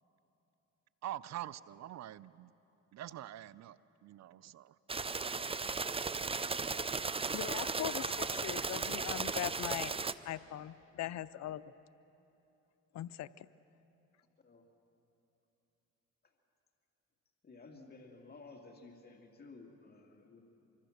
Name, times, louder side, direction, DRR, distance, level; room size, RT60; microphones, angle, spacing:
voice 1, 1.0-2.5 2.9-4.7, right 13 dB, 65° right, 18 dB, 0.6 m, -45 dB
sound 1, 4.9-10.1, right 4 dB, 20° right, 0.6 m, -36 dB
voice 2, 7.3-9.9 10.2-11.6 12.9-13.5, left 13 dB, 60° left, 14 dB, 0.6 m, -40 dB
voice 3, 17.4-20.4, left 3 dB, 30° left, 1 dB, 2.5 m, -54 dB
25.0 x 24.0 x 6.6 m, 3.0 s
cardioid pair, 90°, 30 cm